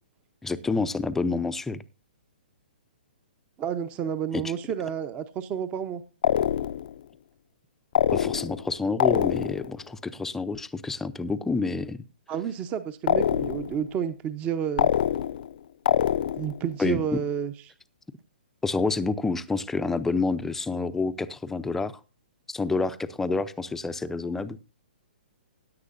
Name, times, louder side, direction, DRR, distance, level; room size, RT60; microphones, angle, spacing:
voice 1, 0.4-1.8 4.3-4.4 8.1-12.0 16.8-17.2 18.6-21.9 22.5-24.6, left 3 dB, 5° left, 11 dB, 0.5 m, -28 dB
voice 2, 3.6-6.0 12.3-14.9 16.4-17.5, right 8 dB, 25° right, 12 dB, 0.8 m, -30 dB
sound 1, 6.2-6.9 7.9-8.7 9.0-9.7 13.1-13.8 14.8-15.5 15.9-16.6, left 10 dB, 60° left, 0.5 m, -24 dB
16.5 x 9.3 x 2.6 m, 0.33 s
hypercardioid pair, 140°, 6 cm